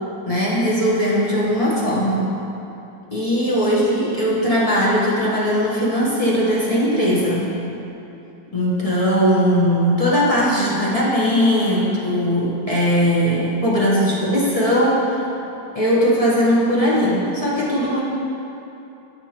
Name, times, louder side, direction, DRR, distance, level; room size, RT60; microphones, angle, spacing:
voice 1, 0.2-2.3 3.1-7.5 8.5-15.2 15.7-18.0, equal, 25° left, -8 dB, 0.9 m, -19 dB
8.0 x 7.1 x 2.9 m, 2.9 s
omnidirectional pair, 2.0 m